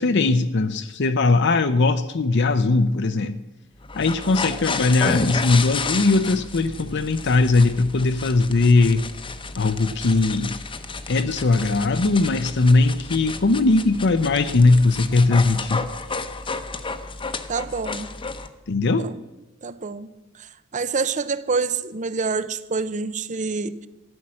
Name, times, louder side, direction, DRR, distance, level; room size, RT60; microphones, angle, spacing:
voice 1, 0.0-3.4 4.0-9.0 9.6-10.6 11.1-15.9 18.7-19.1, left 3 dB, 55° left, 0.6 m, -19 dB
sound 1, 3.8-18.5, left 3 dB, 25° left, 0.9 m, -31 dB
voice 2, 17.5-18.1 19.0-19.2 19.6-20.1 20.4-23.9, right 4 dB, 35° right, 0.7 m, -27 dB
14.0 x 9.9 x 7.6 m
head